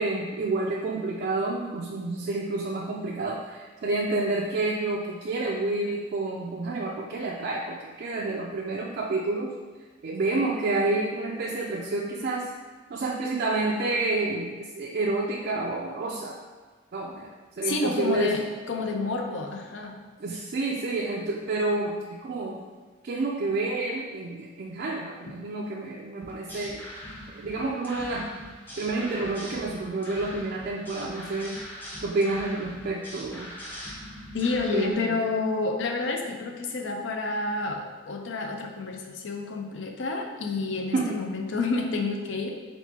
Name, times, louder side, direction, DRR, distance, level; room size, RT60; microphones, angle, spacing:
voice 1, 0.0-9.6 10.0-12.5 12.9-16.4 16.9-17.3 17.6-18.3 20.2-22.6 23.0-26.8 27.3-28.3 28.8-31.6 32.0-33.5 34.7-35.1 40.9-41.2, right 2 dB, 55° right, -2 dB, 0.3 m, -29 dB
voice 2, 17.6-20.0 34.3-42.6, left 3 dB, 80° left, 3 dB, 0.6 m, -29 dB
sound 1, 26.2-34.9, equal, 10° left, 0.7 m, -42 dB
4.6 x 3.7 x 2.8 m, 1.4 s
head